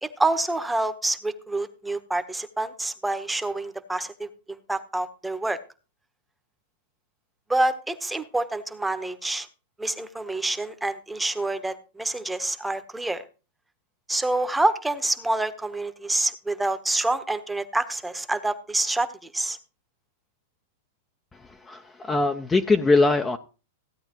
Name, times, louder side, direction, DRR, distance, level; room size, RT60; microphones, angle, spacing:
voice 1, 0.0-5.6 7.5-9.5 9.8-13.2 14.1-19.6, right 2 dB, 5° right, 10 dB, 1.0 m, -27 dB
voice 2, 21.3-23.4, left 3 dB, 15° left, 6 dB, 0.6 m, -22 dB
15.5 x 8.8 x 3.0 m, 0.33 s
hypercardioid pair, 115°, 0 cm